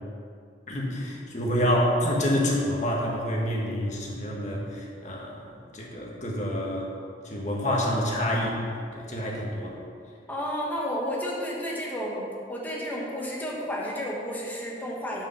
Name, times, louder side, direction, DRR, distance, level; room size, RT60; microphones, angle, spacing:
voice 1, 0.7-6.9 7.2-8.6 8.9-9.8, equal, 40° left, -2 dB, 1.5 m, -27 dB
voice 2, 10.3-15.2, equal, 10° left, -4 dB, 1.4 m, -32 dB
8.9 x 5.2 x 5.7 m, 2.3 s
head